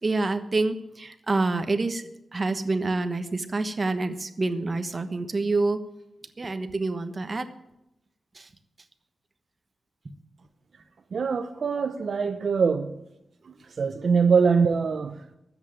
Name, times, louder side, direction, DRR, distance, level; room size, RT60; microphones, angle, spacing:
voice 1, 0.0-5.8 6.4-7.5 8.3-8.5, right 3 dB, 35° right, 1.2 m, -27 dB
voice 2, 11.1-13.0 13.4-15.3, right 5 dB, 60° right, 0.8 m, -23 dB
13.5 x 8.3 x 9.0 m
wide cardioid pair, 130°, 0 cm